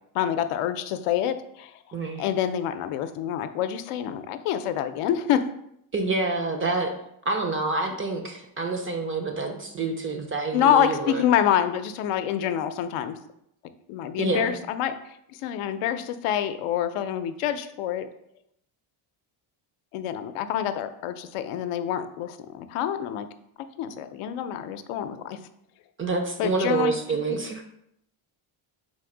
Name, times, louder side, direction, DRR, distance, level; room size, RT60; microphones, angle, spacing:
voice 1, 0.1-1.7 2.2-5.4 10.5-13.2 13.9-18.1 19.9-23.3 23.8-25.5 26.4-26.9 27.3-27.4, left 10 dB, 85° left, 9 dB, 0.6 m, -27 dB
voice 2, 1.9-2.2 5.9-7.0 7.3-11.2 14.2-14.5 26.0-27.6, right 3 dB, 30° right, 4 dB, 0.3 m, -27 dB
4.2 x 2.6 x 4.8 m, 0.75 s
cardioid pair, 150°, 50 cm